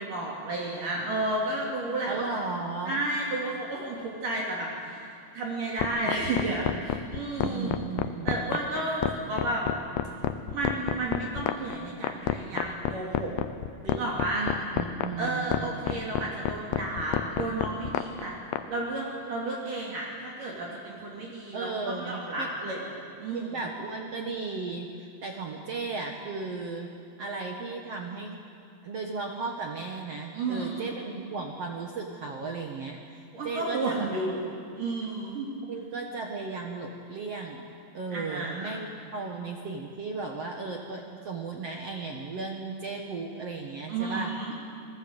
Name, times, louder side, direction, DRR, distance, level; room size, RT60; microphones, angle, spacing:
voice 1, 0.0-2.3 2.9-7.9 8.2-9.6 10.5-13.3 13.8-14.5 15.2-18.4 18.7-23.6 30.3-30.9 33.3-35.5 38.1-38.8 43.9-44.5, right 2 dB, 50° right, -3 dB, 4.1 m, -32 dB
voice 2, 2.1-3.0 7.4-8.6 14.3-15.7 21.5-22.5 23.3-26.9 27.2-28.3 28.8-34.1 35.7-44.3, right 4 dB, 70° right, 1 dB, 1.4 m, -35 dB
sound 1, 5.8-18.6, left 12 dB, 75° left, 2.4 m, -28 dB
27.5 x 20.0 x 8.1 m, 2.4 s
omnidirectional pair, 5.2 m